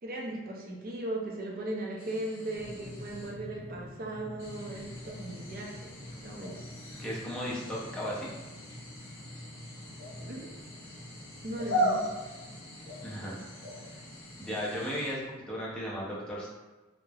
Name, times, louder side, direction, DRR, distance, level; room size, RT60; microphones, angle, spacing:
voice 1, 0.0-7.0 10.2-10.6 11.4-12.1, right 1 dB, 45° right, -1 dB, 0.4 m, -38 dB
sound 1, 2.0-3.3 4.4-15.1, equal, 65° left, 0.9 m, -38 dB
sound 2, 2.5-15.1, left 1 dB, 20° left, 1.1 m, -48 dB
voice 2, 7.0-8.3 13.0-13.4 13.8-14.0 14.4-16.5, equal, 5° left, -7 dB, 0.5 m, -35 dB
3.0 x 2.0 x 2.3 m, 1.2 s
head